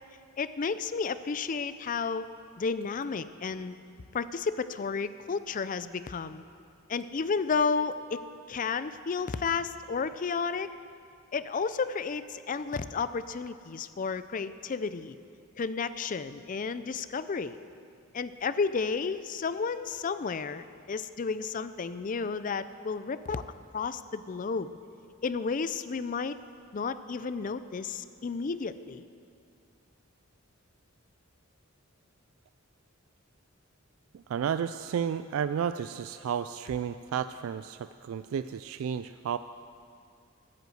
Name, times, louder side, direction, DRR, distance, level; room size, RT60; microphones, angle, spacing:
voice 1, 0.4-2.3 2.6-3.8 4.1-6.4 6.9-8.2 8.5-10.7 11.3-15.2 15.6-17.6 18.1-23.4 23.7-24.7 25.2-26.4 26.7-29.0, left 5 dB, 40° left, 13 dB, 0.4 m, -32 dB
voice 2, 34.1-39.4, right 8 dB, 75° right, 12 dB, 0.3 m, -32 dB
14.0 x 8.2 x 7.8 m, 2.4 s
head